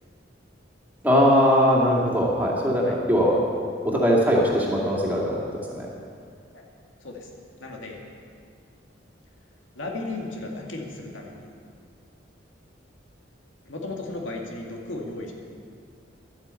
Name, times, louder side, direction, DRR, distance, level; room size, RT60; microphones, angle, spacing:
voice 1, 1.0-3.4 3.8-5.9, equal, 10° right, -4 dB, 2.3 m, -21 dB
voice 2, 7.6-8.0 9.8-11.5 13.7-15.3, left 2 dB, 85° left, 0 dB, 2.1 m, -35 dB
12.0 x 9.7 x 8.4 m, 2.2 s
head